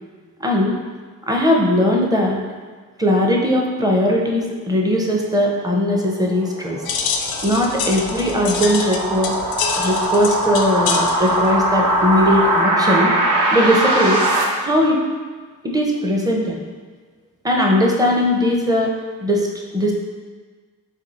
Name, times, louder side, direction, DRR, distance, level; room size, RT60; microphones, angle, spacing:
voice 1, 0.4-0.8 1.3-2.4 3.0-6.8 7.4-9.3 9.8-13.1 13.5-14.2 14.6-15.0 15.6-16.6 17.4-18.9 19.2-19.5 19.7-19.9, left 1 dB, 10° right, -1 dB, 0.6 m, -19 dB
sound 1, 5.8-14.4, right 1 dB, 60° right, 0.8 m, -21 dB
sound 2, 6.9-12.6, left 6 dB, 80° left, 0.5 m, -27 dB
4.2 x 2.7 x 4.1 m, 1.5 s
cardioid pair, 105°, 36 cm